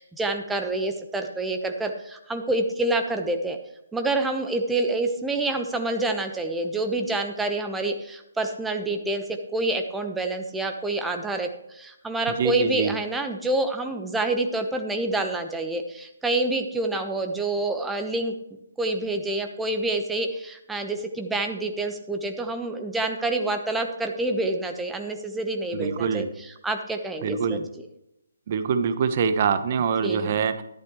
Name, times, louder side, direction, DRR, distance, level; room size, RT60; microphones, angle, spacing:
voice 1, 0.0-3.6 3.9-18.3 18.8-26.2 26.6-27.6 30.0-30.4, right 2 dB, 5° right, 5 dB, 1.0 m, -27 dB
voice 2, 12.3-12.9 25.7-26.3 27.2-27.6 28.5-30.6, right 6 dB, 40° right, 10 dB, 1.0 m, -24 dB
13.5 x 11.5 x 3.1 m, 0.85 s
figure-of-eight pair, 140°, 0 cm